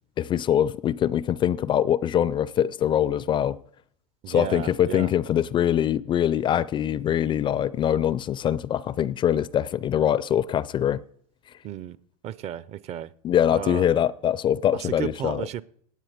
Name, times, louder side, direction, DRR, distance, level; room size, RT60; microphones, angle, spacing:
voice 1, 0.2-3.6 4.3-11.0 13.2-15.4, left 10 dB, 25° left, 0.4 m, -23 dB
voice 2, 4.2-5.1 11.6-12.0 12.2-13.1 13.5-13.9 14.7-15.6, right 11 dB, 35° right, 0.6 m, -33 dB
17.5 x 8.8 x 5.0 m
hypercardioid pair, 120°, 19 cm